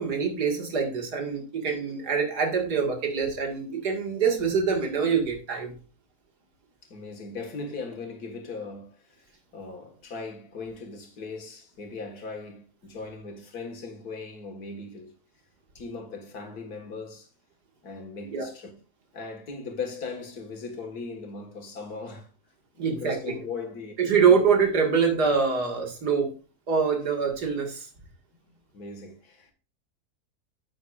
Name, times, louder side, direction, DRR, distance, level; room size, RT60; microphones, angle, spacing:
voice 1, 0.0-5.8 18.3-18.5 22.8-23.3 24.0-26.3 26.7-27.9, right 6 dB, 90° right, 2.5 m, -24 dB
voice 2, 6.8-9.3 9.5-15.1 15.8-17.3 17.8-18.7 19.1-22.3 22.7-23.9 24.3-24.4 28.7-29.5, left 4 dB, 75° left, 2.2 m, -38 dB
9.7 x 7.8 x 2.5 m
omnidirectional pair, 1.7 m